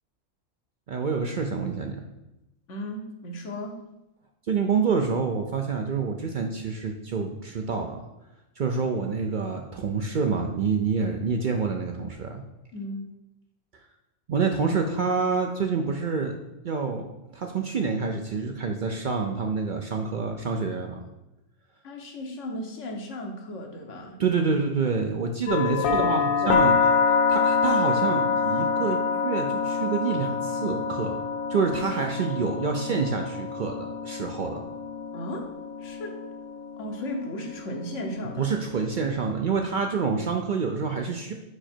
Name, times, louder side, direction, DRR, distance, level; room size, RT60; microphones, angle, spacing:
voice 1, 0.9-2.0 4.5-8.0 8.6-12.4 14.3-16.3 16.6-21.0 24.2-26.9 27.3-31.2 31.5-34.6 38.4-41.3, right 5 dB, 55° right, 3 dB, 0.6 m, -27 dB
voice 2, 2.7-3.8 12.7-13.0 21.8-24.2 25.9-26.6 35.1-35.5 35.8-36.1 36.8-38.4, left 1 dB, 75° left, 3 dB, 1.3 m, -35 dB
sound 1, 25.5-39.3, left 5 dB, 60° left, 0.6 m, -27 dB
5.0 x 4.9 x 4.4 m, 0.95 s
omnidirectional pair, 1.3 m